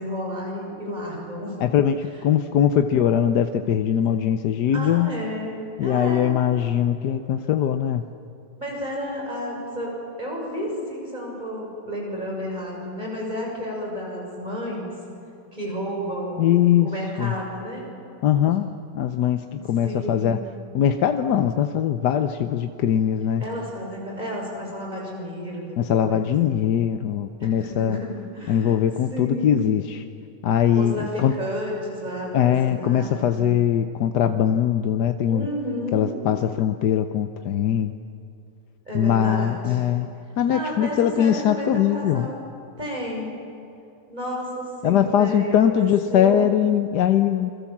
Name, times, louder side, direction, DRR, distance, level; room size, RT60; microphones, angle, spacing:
voice 1, 0.0-1.6 4.7-6.3 8.6-9.9 10.2-14.9 15.5-16.5 16.8-17.8 19.5-20.4 23.4-26.6 27.4-28.8 29.1-29.8 30.7-33.5 35.3-36.2 38.8-39.8 40.5-42.4 42.7-43.3 44.1-46.4, equal, 25° right, -2 dB, 6.8 m, -31 dB
voice 2, 1.6-5.1 5.8-8.0 16.4-16.9 17.2-17.3 18.2-20.4 20.7-23.4 25.8-28.0 28.5-30.0 30.4-31.3 32.3-35.5 35.9-37.9 38.9-40.1 40.4-42.3 44.8-47.5, left 9 dB, 70° left, 8 dB, 1.3 m, -21 dB
28.0 x 23.0 x 7.3 m, 2.7 s
omnidirectional pair, 1.9 m